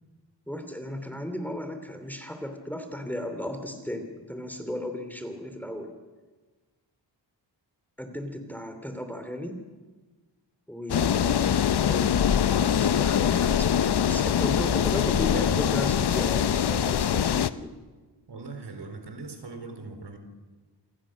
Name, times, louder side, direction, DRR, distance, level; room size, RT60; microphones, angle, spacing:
voice 1, 0.5-5.9 8.0-9.6 10.7-11.5 11.8-17.7, left 1 dB, 5° left, 7 dB, 2.9 m, -35 dB
sound 1, 10.9-17.5, left 8 dB, 65° left, 0.8 m, -23 dB
voice 2, 18.3-20.2, right 3 dB, 70° right, 6 dB, 3.9 m, -40 dB
28.0 x 19.0 x 6.4 m, 1.3 s
wide cardioid pair, 100°, 42 cm